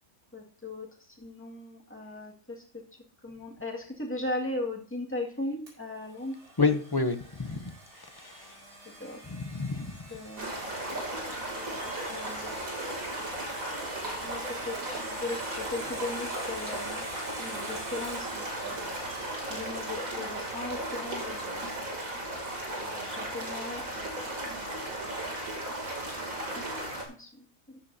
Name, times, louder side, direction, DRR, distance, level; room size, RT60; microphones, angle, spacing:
voice 1, 0.3-2.8 3.2-6.4 9.0-9.2 10.1-10.6 10.9-12.6 14.2-17.0 17.4-19.0 19.5-22.0 22.8-24.7 27.1-27.8, left 2 dB, 10° left, 1.9 m, -38 dB
Domestic sounds home sounds, 5.7-22.4, right 1 dB, 55° right, 4.5 m, -47 dB
voice 2, 6.6-7.7 8.2-8.5 9.3-9.9, left 4 dB, 25° left, 0.5 m, -29 dB
sound 1, 10.4-27.0, right 1 dB, 85° right, 3.1 m, -36 dB
13.5 x 10.0 x 2.7 m
omnidirectional pair, 1.4 m